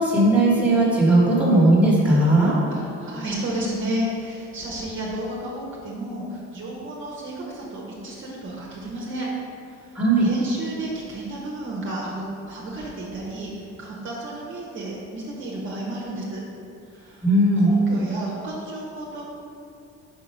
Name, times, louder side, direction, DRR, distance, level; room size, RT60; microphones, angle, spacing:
voice 1, 0.0-2.5 9.9-10.3 17.2-17.7, right 1 dB, 5° right, -7 dB, 1.4 m, -17 dB
voice 2, 2.7-9.3 9.7-16.4 16.9-17.2 17.6-19.2, right 1 dB, 40° right, -4 dB, 1.1 m, -32 dB
5.4 x 4.6 x 5.4 m, 2.6 s
cardioid pair, 145°, 32 cm